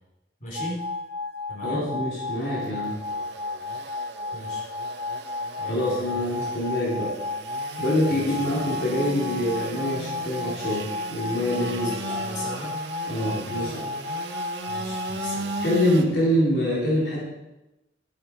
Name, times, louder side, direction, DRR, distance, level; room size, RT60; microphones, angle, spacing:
voice 1, 0.4-0.8 1.5-1.8 4.3-4.6 5.6-6.6 8.1-8.6 11.6-12.7 13.2-13.7 14.7-15.6, left 1 dB, 45° left, -4 dB, 4.5 m, -38 dB
sound 1, 0.5-15.7, left 3 dB, 35° right, 1.4 m, -33 dB
voice 2, 1.6-3.0 5.7-7.1 7.8-12.2 13.1-13.8 15.3-17.2, left 1 dB, 65° left, -5 dB, 4.0 m, -25 dB
Engine / Sawing, 2.3-16.0, right 3 dB, 75° right, 1.5 m, -37 dB
13.0 x 11.5 x 4.8 m, 0.96 s
head